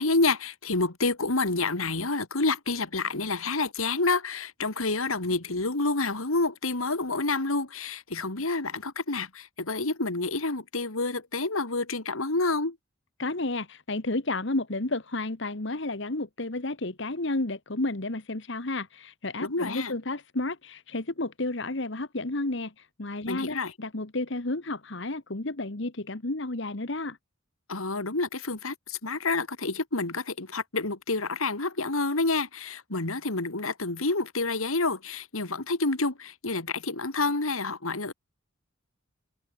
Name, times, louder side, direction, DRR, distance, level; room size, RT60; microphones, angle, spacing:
voice 1, 0.0-12.8 19.4-19.9 23.3-23.7 27.7-38.1, left 3 dB, 85° left, 2.6 m, -28 dB
voice 2, 13.2-22.7 23.0-27.2, left 2 dB, 60° left, 1.5 m, -31 dB
head